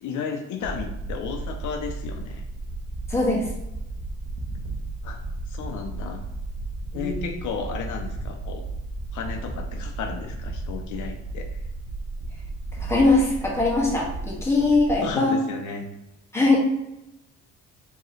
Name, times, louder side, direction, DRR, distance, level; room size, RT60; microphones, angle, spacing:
voice 1, 0.0-2.4 5.0-5.2 5.5-6.2 6.9-8.6 9.1-11.5 15.0-15.9, left 6 dB, 75° left, 4 dB, 0.6 m, -33 dB
sound 1, 0.6-15.1, right 2 dB, 90° right, 0.9 m, -34 dB
voice 2, 3.1-3.5 5.6-5.7 6.9-7.3 12.8-15.3 16.3-16.6, left 2 dB, 10° left, -4 dB, 1.4 m, -21 dB
4.6 x 2.9 x 3.2 m, 0.90 s
cardioid pair, 90°, 30 cm